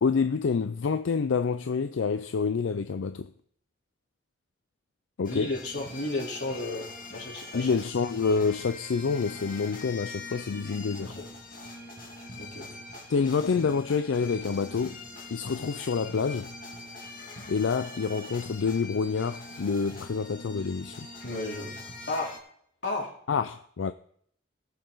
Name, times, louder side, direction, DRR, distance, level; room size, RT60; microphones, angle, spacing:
voice 1, 0.0-3.3 5.2-5.5 7.5-11.2 13.1-15.0 15.3-16.5 17.5-21.1 23.3-23.9, left 5 dB, 85° left, 0.4 m, -27 dB
sound 1, 5.2-22.4, left 2 dB, 45° left, 2.2 m, -43 dB
voice 2, 5.3-7.7 11.1-11.3 12.4-12.7 21.2-22.4 22.8-23.1, left 2 dB, 60° left, 3.5 m, -33 dB
18.0 x 6.9 x 4.0 m
head